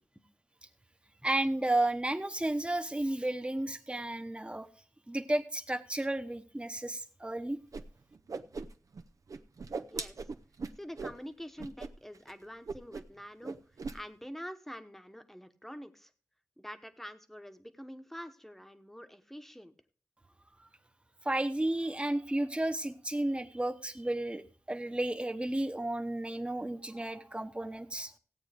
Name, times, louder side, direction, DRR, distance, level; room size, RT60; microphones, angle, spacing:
voice 1, 1.2-4.7 5.1-7.6 21.2-28.1, right 1 dB, 20° right, 9 dB, 1.0 m, -32 dB
Whoosh swoosh swish, 7.7-7.8 8.1-9.0 9.3-11.2 11.6-11.9 12.1-12.3 12.7-13.2 13.4-14.0, right 4 dB, 75° right, 0.7 m, -39 dB
voice 2, 10.8-13.6 13.9-16.1 16.6-19.7, equal, 5° left, 8 dB, 1.0 m, -46 dB
16.5 x 8.9 x 3.4 m, 0.39 s
wide cardioid pair, 95°, 6 cm